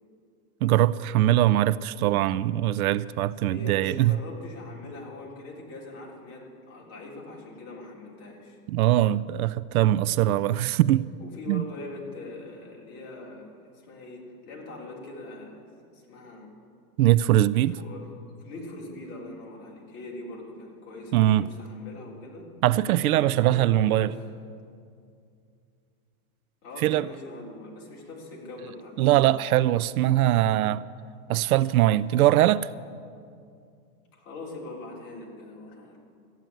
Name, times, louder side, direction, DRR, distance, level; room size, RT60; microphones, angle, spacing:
voice 1, 0.6-4.2 8.7-11.1 11.5-11.6 17.0-17.8 21.1-21.5 22.6-24.1 26.8-27.1 29.0-30.8 31.3-32.7, right 14 dB, 75° right, 0.5 m, -22 dB
voice 2, 3.4-8.6 11.2-15.6 15.9-16.5 17.7-18.1 18.4-22.5 23.1-24.2 26.6-29.2 34.2-36.0, left 2 dB, 35° left, 3.6 m, -42 dB
14.0 x 9.1 x 9.0 m
supercardioid pair, 145°, 44 cm